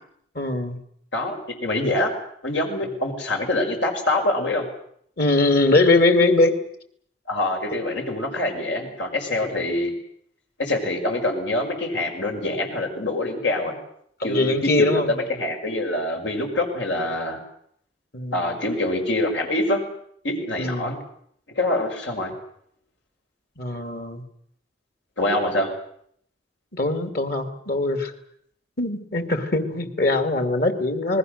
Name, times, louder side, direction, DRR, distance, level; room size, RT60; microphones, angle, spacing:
voice 1, 0.4-0.8 5.2-6.6 14.2-15.1 18.1-18.5 20.6-21.0 23.6-24.2 26.7-28.1 28.8-31.2, left 2 dB, 55° left, 8 dB, 2.5 m, -21 dB
voice 2, 1.1-2.1 2.4-4.7 7.3-9.9 10.6-13.7 14.2-17.4 18.3-19.9 20.2-21.0 21.6-22.3 25.2-25.7, left 1 dB, 85° left, 3 dB, 5.9 m, -25 dB
28.0 x 20.5 x 6.7 m, 0.67 s
head